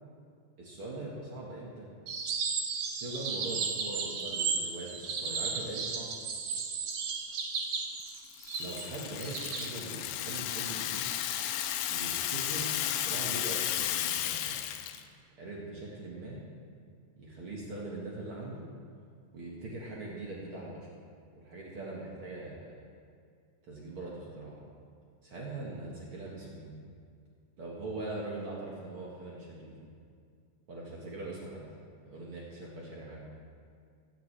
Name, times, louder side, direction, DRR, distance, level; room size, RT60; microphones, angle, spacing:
voice 1, 0.6-1.9 2.9-6.1 8.6-11.1 11.9-14.6 15.4-16.4 17.2-18.7 19.3-20.9 21.3-22.8 23.7-24.6 25.2-26.7 27.6-29.9 30.7-31.7 32.0-33.3, right 2 dB, 90° right, -4 dB, 1.2 m, -41 dB
sound 1, 2.1-9.7, right 5 dB, 70° right, 2.3 m, -34 dB
Rattle (instrument), 8.1-15.0, left 11 dB, 85° left, 2.7 m, -34 dB
23.0 x 9.5 x 3.4 m, 2.2 s
omnidirectional pair, 5.2 m